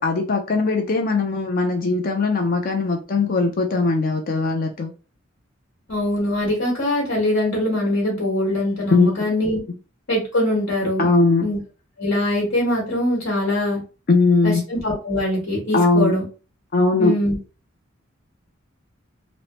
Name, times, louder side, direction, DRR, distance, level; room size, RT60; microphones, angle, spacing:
voice 1, 0.0-4.9 8.9-9.1 11.0-11.5 14.1-14.6 15.7-16.1 16.7-17.1, left 3 dB, 45° left, 3 dB, 0.4 m, -19 dB
voice 2, 5.9-9.6 10.1-11.1 11.4-11.6 12.0-13.8 14.4-16.2 17.0-17.4, left 1 dB, 65° left, -5 dB, 1.3 m, -22 dB
3.0 x 2.0 x 2.9 m, 0.35 s
head